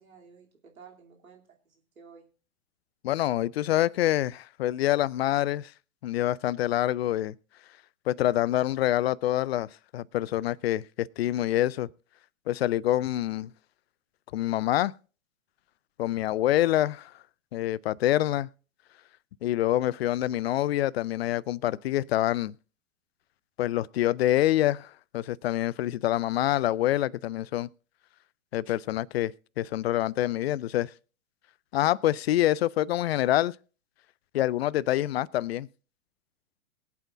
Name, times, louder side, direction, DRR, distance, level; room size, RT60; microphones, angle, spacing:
voice 1, 0.0-2.3, right 6 dB, 75° right, 2.7 m, -53 dB
voice 2, 3.0-5.7 6.0-7.3 8.1-9.7 9.9-11.9 12.5-13.5 14.3-14.9 16.0-17.1 17.5-18.5 19.4-22.5 23.6-27.7 28.5-30.9 31.7-33.6 34.3-35.7, left 14 dB, 50° left, 0.4 m, -26 dB
23.0 x 8.3 x 2.4 m
figure-of-eight pair, 105°, 42 cm